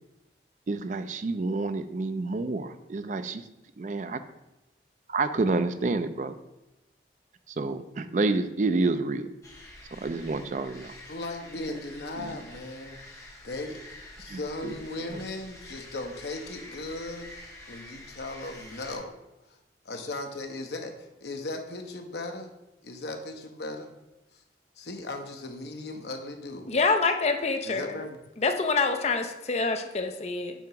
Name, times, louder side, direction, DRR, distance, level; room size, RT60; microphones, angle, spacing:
voice 1, 0.7-3.5 3.8-4.2 5.1-6.4 7.5-9.3 9.9-11.0 12.2-12.4 14.3-14.7 15.0-15.2, right 3 dB, 45° right, 10 dB, 0.4 m, -29 dB
sound 1, 9.4-19.0, left 1 dB, 15° left, 1.0 m, -47 dB
voice 2, 11.1-17.3 17.7-19.2 19.5-19.6 19.8-22.5 22.8-23.9 24.3-24.4 24.8-26.7 27.6-28.2, left 2 dB, 65° left, 5 dB, 0.8 m, -37 dB
voice 3, 26.7-27.9 28.4-30.5, left 4 dB, 35° left, 6 dB, 0.5 m, -26 dB
7.1 x 2.9 x 5.7 m, 0.95 s
head